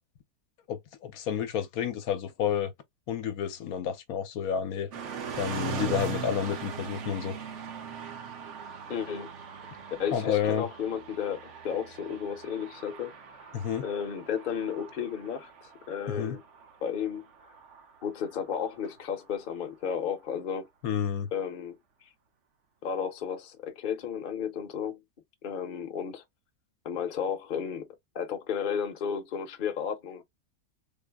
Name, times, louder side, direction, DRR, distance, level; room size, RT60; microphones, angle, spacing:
voice 1, 0.7-2.7 3.1-4.9 5.4-7.4 10.1-10.7 13.5-13.8 16.1-16.4 20.8-21.3, left 8 dB, 75° left, 1.1 m, -30 dB
sound 1, 4.9-18.9, right 6 dB, 60° right, 0.9 m, -40 dB
voice 2, 8.9-9.3 10.0-13.1 13.8-15.5 15.9-16.4 16.8-17.5 18.0-20.7 21.3-21.8 22.8-25.0 25.4-26.2 26.8-27.9 28.1-30.2, left 7 dB, 45° left, 0.8 m, -33 dB
3.7 x 2.0 x 3.4 m
omnidirectional pair, 1.6 m